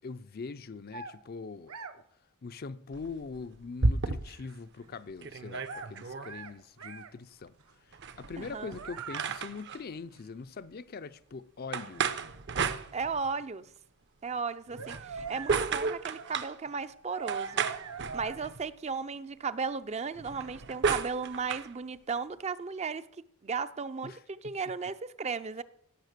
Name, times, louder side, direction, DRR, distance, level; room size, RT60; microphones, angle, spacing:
voice 1, 0.0-2.0 2.4-7.5 7.9-12.1 24.0-24.2 24.4-24.5, left 4 dB, 45° left, 0.5 m, -42 dB
sound 1, 0.9-1.2 1.7-1.9 4.8-4.9 5.4-6.5 6.8-7.1 7.6-7.7 8.5-9.4 9.7-9.8 10.1-10.2 11.2-11.3 11.8-12.9 13.2-13.3 14.3-14.4 14.7-18.4, right 5 dB, 75° right, 1.0 m, -43 dB
sound 2, 2.9-4.5 4.9-5.0 5.2-6.3 7.9-9.8 11.7-13.4 14.7-16.6 17.3-18.7 20.2-21.7, right 4 dB, 55° right, 0.8 m, -33 dB
voice 2, 8.4-8.7 12.9-13.6 14.2-17.7 18.1-25.6, right 5 dB, 30° right, 0.5 m, -35 dB
17.0 x 6.5 x 6.7 m
head